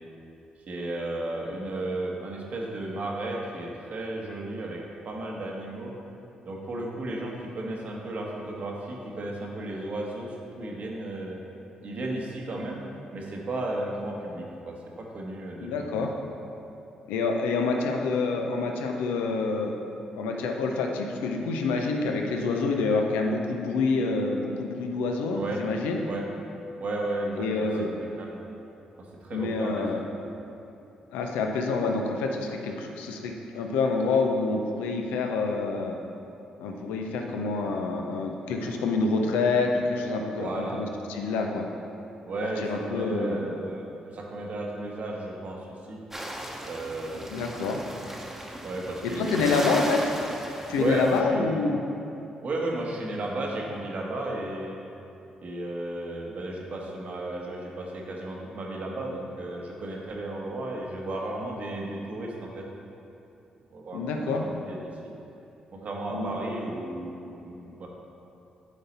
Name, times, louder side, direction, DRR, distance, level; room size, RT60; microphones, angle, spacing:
voice 1, 0.7-4.8 5.0-5.9 6.5-11.4 11.8-12.8 13.1-16.1 25.3-25.6 26.0-26.2 26.8-27.9 28.2-28.4 29.2-30.0 40.4-40.8 42.2-46.0 46.6-47.3 48.6-49.6 50.7-51.6 52.4-54.8 55.4-62.6 63.7-64.9 65.7-67.9, right 2 dB, 60° right, -1 dB, 1.3 m, -34 dB
voice 2, 15.6-16.1 17.1-19.7 20.2-26.1 27.4-28.0 29.3-30.0 31.1-36.0 36.6-41.6 42.6-43.5 47.3-47.8 49.0-50.1 50.7-51.8 63.9-64.4 66.1-66.3, left 3 dB, 85° left, 2 dB, 0.6 m, -27 dB
sound 1, 46.1-51.2, right 1 dB, 10° right, 1.0 m, -37 dB
9.3 x 4.0 x 4.2 m, 2.8 s
hypercardioid pair, 50°, 3 cm